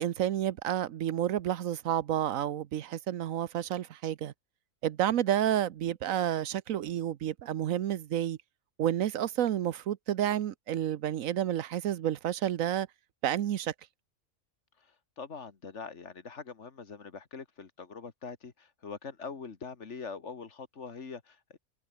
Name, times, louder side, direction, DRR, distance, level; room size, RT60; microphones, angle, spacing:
voice 1, 0.0-4.3 4.8-8.4 8.8-12.9 13.2-13.7, right 11 dB, 80° right, 1.2 m, -30 dB
voice 2, 14.8-21.6, left 5 dB, 60° left, 2.0 m, -43 dB
omnidirectional pair, 1.4 m